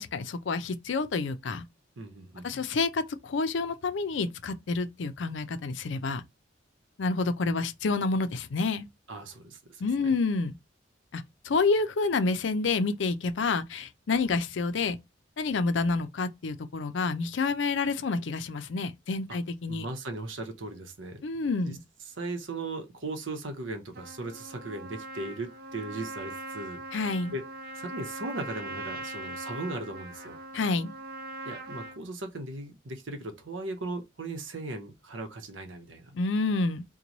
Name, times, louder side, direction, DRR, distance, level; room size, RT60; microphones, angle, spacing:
voice 1, 0.0-1.6 2.4-6.2 7.0-8.9 9.8-10.6 11.1-15.0 15.4-19.9 21.2-21.8 26.9-27.3 30.5-30.9 36.1-36.8, left 3 dB, 70° left, 0.5 m, -28 dB
voice 2, 2.0-2.6 9.1-10.2 19.7-21.2 21.7-21.8 22.2-26.8 27.3-27.4 27.7-30.4 31.4-36.2, right 2 dB, 80° right, 0.8 m, -38 dB
Trumpet, 23.9-32.0, right 2 dB, 50° right, 0.6 m, -41 dB
3.0 x 2.2 x 3.9 m
head